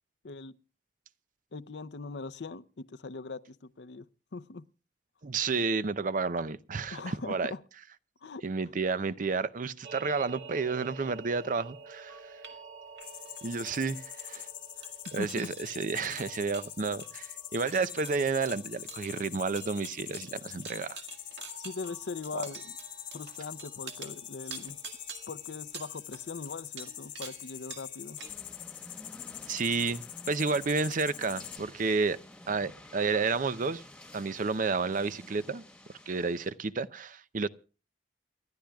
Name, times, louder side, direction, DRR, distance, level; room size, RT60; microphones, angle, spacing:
voice 1, 0.2-0.6 1.5-4.1 4.3-4.6 6.9-7.6 8.2-8.4 15.2-15.5 21.6-22.8 23.1-24.8 25.3-28.2, left 3 dB, 75° left, 0.6 m, -40 dB
voice 2, 5.2-7.5 8.4-12.3 13.4-14.5 15.1-21.0 29.5-32.2 32.5-33.8 34.1-35.6 36.1-37.5, right 4 dB, 50° right, 0.6 m, -31 dB
sound 1, 9.8-28.3, right 6 dB, 80° right, 1.9 m, -48 dB
sound 2, 13.0-31.6, left 11 dB, 50° left, 0.9 m, -44 dB
sound 3, 28.2-36.5, left 1 dB, 5° left, 1.4 m, -51 dB
29.0 x 11.5 x 2.3 m
head